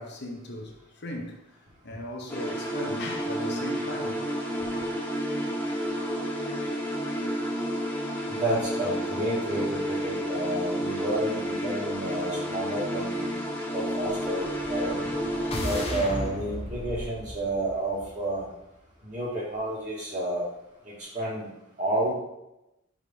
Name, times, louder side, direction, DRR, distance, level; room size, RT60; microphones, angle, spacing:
voice 1, 0.0-4.2 4.6-4.9, left 1 dB, 50° left, 0.9 m, -38 dB
sound 1, 2.3-15.9, equal, 10° left, 0.9 m, -31 dB
voice 2, 8.3-13.3 13.7-15.0 15.6-18.5 19.0-20.4 20.9-21.5 21.8-22.1, right 1 dB, 35° right, 1.9 m, -30 dB
sound 2, 14.3-18.6, left 1 dB, 30° left, 1.1 m, -36 dB
4.9 x 3.6 x 5.4 m
head